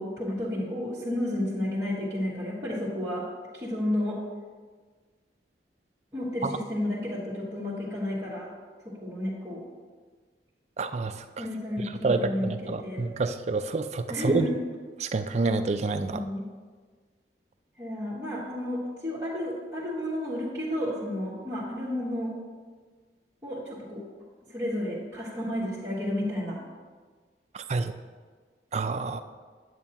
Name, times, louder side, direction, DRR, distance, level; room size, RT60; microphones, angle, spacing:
voice 1, 0.0-3.3 3.5-4.2 6.1-8.5 8.8-9.6 11.4-13.0 14.1-14.5 16.1-16.5 17.8-22.3 23.4-24.0 24.5-26.6, left 1 dB, 15° right, -11 dB, 1.4 m, -31 dB
voice 2, 10.8-11.1 12.0-14.5 15.0-16.2 27.7-27.9 28.7-29.2, right 3 dB, 40° right, 8 dB, 0.4 m, -28 dB
9.1 x 8.5 x 2.9 m, 1.5 s
head